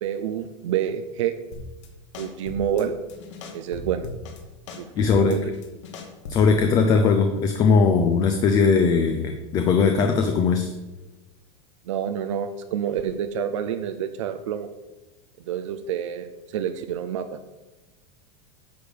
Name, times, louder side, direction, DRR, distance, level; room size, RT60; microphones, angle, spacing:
voice 1, 0.0-1.3 2.2-3.0 3.5-4.1 4.8-5.5 11.9-14.7 15.5-17.4, right 9 dB, 90° right, 8 dB, 0.7 m, -28 dB
sound 1, 1.5-1.9 2.1-2.8 3.1-4.4 4.7-6.6, left 3 dB, 75° left, 2.3 m, -38 dB
voice 2, 5.0-5.4 6.3-10.7, left 5 dB, 25° left, 6 dB, 0.6 m, -19 dB
10.0 x 6.7 x 5.2 m, 1.1 s
supercardioid pair, 170°, 15 cm